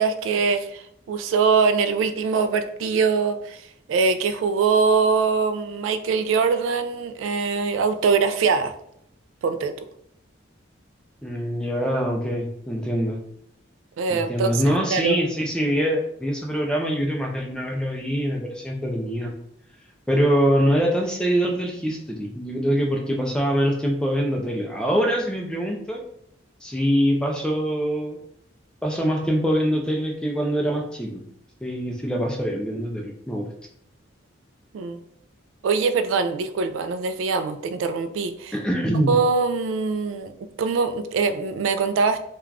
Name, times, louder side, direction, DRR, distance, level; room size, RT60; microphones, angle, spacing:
voice 1, 0.0-8.7 9.4-9.7 14.0-14.6 14.9-15.2 34.7-35.0 35.6-38.5 39.1-40.3 40.6-42.2, right 5 dB, 85° right, 9 dB, 0.3 m, -23 dB
voice 2, 11.2-13.2 14.1-19.3 20.1-26.0 26.6-28.2 28.8-31.2 31.6-33.5 38.5-39.2, equal, 5° left, 0 dB, 0.4 m, -24 dB
2.4 x 2.2 x 3.2 m, 0.72 s
head